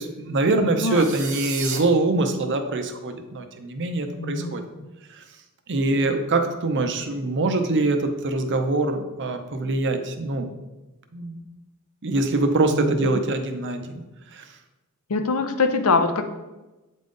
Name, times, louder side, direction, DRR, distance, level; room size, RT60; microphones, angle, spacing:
voice 1, 0.0-4.6 5.1-5.2 5.7-10.5 11.1-11.4 12.0-14.0 14.3-14.4, right 2 dB, 55° right, 7 dB, 0.7 m, -24 dB
voice 2, 0.6-1.1 4.2-4.6 12.7-12.9 15.1-16.2, left 3 dB, 70° left, 7 dB, 0.6 m, -23 dB
sound 1, 0.9-1.8, right 6 dB, 75° right, 1.0 m, -32 dB
8.3 x 3.7 x 3.8 m, 1.1 s
head